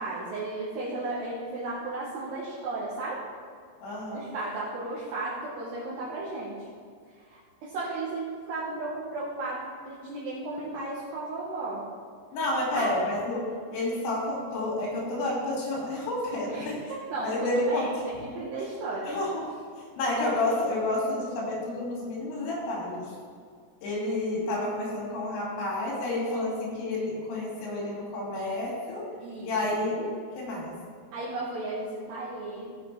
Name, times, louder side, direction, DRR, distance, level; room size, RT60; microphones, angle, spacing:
voice 1, 0.0-3.2 4.1-6.7 7.2-11.8 12.7-12.9 16.5-19.2 29.2-29.8 31.1-32.7, right 2 dB, 70° right, -6 dB, 2.9 m, -34 dB
voice 2, 3.8-4.3 12.3-16.7 17.2-17.9 19.1-19.4 19.8-23.1 23.8-29.0 29.4-30.7, left 2 dB, 80° left, -5 dB, 5.2 m, -30 dB
17.0 x 5.9 x 3.4 m, 2.2 s
omnidirectional pair, 5.8 m